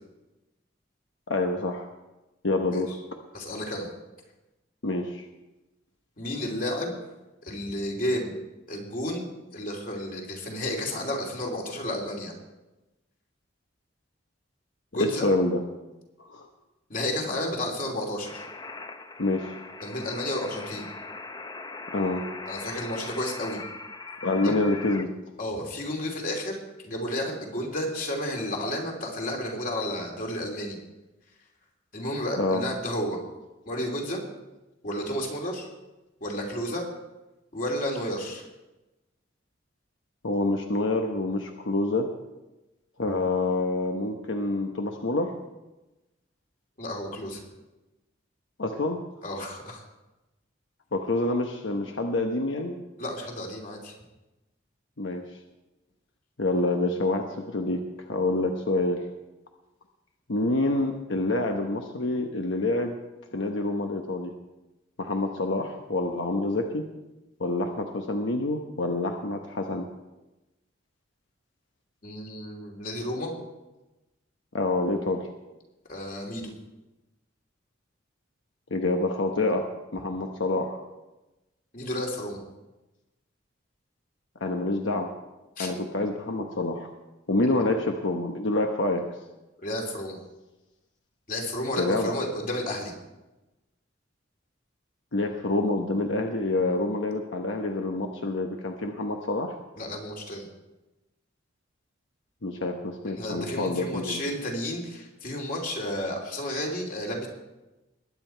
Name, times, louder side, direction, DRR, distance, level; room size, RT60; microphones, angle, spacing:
voice 1, 1.3-1.9 2.4-2.9 4.8-5.3 15.0-15.6 16.2-16.5 19.2-19.5 21.9-22.2 24.2-25.1 32.4-32.6 40.2-42.1 43.0-45.3 48.6-49.0 50.9-52.8 55.0-55.2 56.4-57.8 58.1-59.0 60.3-62.9 63.3-64.3 65.0-66.8 67.4-69.9 74.5-75.3 78.7-79.6 79.9-80.8 84.4-85.1 85.6-86.9 87.3-89.0 91.8-92.2 95.1-99.6 102.4-104.2, left 2 dB, 80° left, 3 dB, 1.0 m, -27 dB
voice 2, 3.3-3.9 6.2-6.9 7.4-8.3 8.7-9.2 9.5-12.3 14.9-15.3 16.9-18.5 19.8-20.8 22.5-23.6 24.4-24.5 25.4-30.8 31.9-33.2 33.7-34.2 34.8-35.7 36.2-36.9 37.5-38.4 46.8-47.4 49.2-49.8 53.0-53.9 72.0-73.3 75.9-76.5 81.7-82.4 85.6-85.7 87.4-87.5 89.6-90.2 91.3-92.9 99.8-100.4 103.2-107.3, left 1 dB, 45° left, 1 dB, 2.9 m, -32 dB
sound 1, 18.2-25.0, left 3 dB, 20° left, 0.6 m, -40 dB
20.5 x 9.4 x 4.5 m, 1.0 s
head